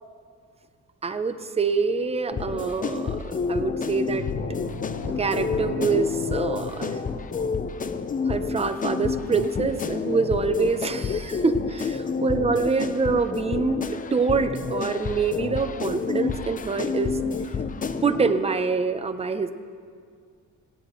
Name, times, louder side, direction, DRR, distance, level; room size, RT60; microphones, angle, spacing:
voice 1, 1.0-4.3 5.1-7.0 8.3-17.2 18.0-19.5, right 4 dB, 20° right, 10 dB, 0.6 m, -25 dB
sound 1, 2.3-18.3, left 5 dB, 25° left, 0.6 m, -29 dB
sound 2, 4.1-7.9, left 3 dB, 60° left, 1.0 m, -37 dB
18.0 x 9.9 x 3.1 m, 2.2 s
cardioid pair, 90°, 30 cm